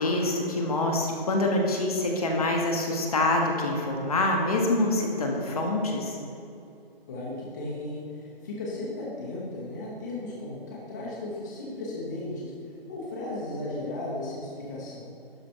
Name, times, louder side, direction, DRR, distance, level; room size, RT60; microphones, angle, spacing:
voice 1, 0.0-6.1, left 2 dB, 40° left, 1 dB, 1.1 m, -25 dB
voice 2, 7.1-12.5 12.9-15.1, left 2 dB, 20° left, -6 dB, 1.0 m, -35 dB
12.0 x 4.9 x 4.5 m, 2.7 s
hypercardioid pair, 170°, 30 cm